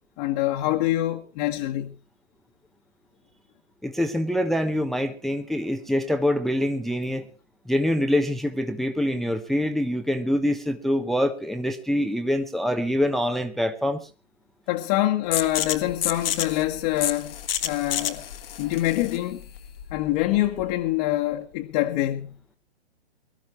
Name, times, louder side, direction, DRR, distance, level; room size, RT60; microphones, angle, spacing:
voice 1, 0.2-2.0 14.7-17.3 17.6-18.2 18.6-19.4 19.9-22.4, left 15 dB, 40° left, 1.5 m, -25 dB
voice 2, 3.8-7.3 7.7-14.1, left 1 dB, ahead, 0.9 m, -25 dB
sound 1, 15.3-20.8, left 10 dB, 60° left, 1.7 m, -30 dB
23.5 x 13.0 x 3.1 m
hypercardioid pair, 125°, 32 cm